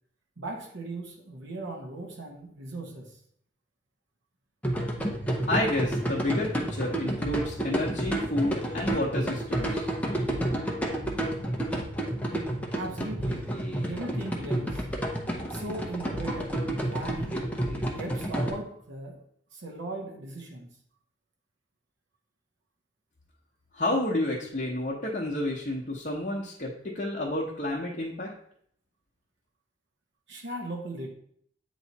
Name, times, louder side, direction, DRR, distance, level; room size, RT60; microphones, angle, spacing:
voice 1, 0.4-3.2 12.7-13.5 13.9-14.8 15.5-16.6 16.9-17.4 18.0-19.2 19.5-20.7 30.3-31.1, right 2 dB, 85° right, 1 dB, 1.0 m, -38 dB
sound 1, 4.6-18.5, right 1 dB, 5° left, 0.7 m, -30 dB
voice 2, 5.5-9.9 23.7-28.3, left 1 dB, 45° left, -4 dB, 0.9 m, -30 dB
8.2 x 3.1 x 4.0 m, 0.65 s
head